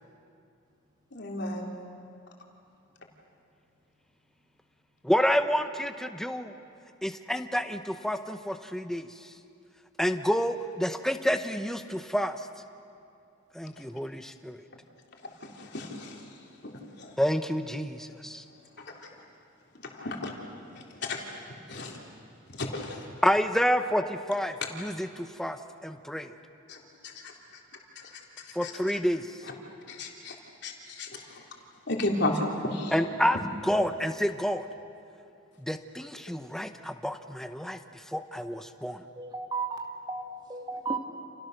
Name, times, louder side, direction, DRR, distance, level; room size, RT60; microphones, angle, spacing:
voice 1, 1.1-1.7 15.6-16.2 17.0-17.1 20.0-20.3 21.0-21.2 21.7-22.0 22.6-23.0 26.7-26.8 28.6-28.7 29.9-30.3 30.6-31.1 31.9-32.9, left 2 dB, 50° left, 0 dB, 3.5 m, -32 dB
voice 2, 5.0-6.5 7.0-9.1 10.0-12.4 13.5-14.6 17.2-18.4 23.2-25.6 25.8-26.3 28.5-29.3 32.9-34.7 35.6-37.8 38.1-39.0, equal, ahead, 8 dB, 0.9 m, -29 dB
voice 3, 39.2-41.0, right 4 dB, 20° right, 3 dB, 2.1 m, -34 dB
29.5 x 29.0 x 6.7 m, 2.6 s
head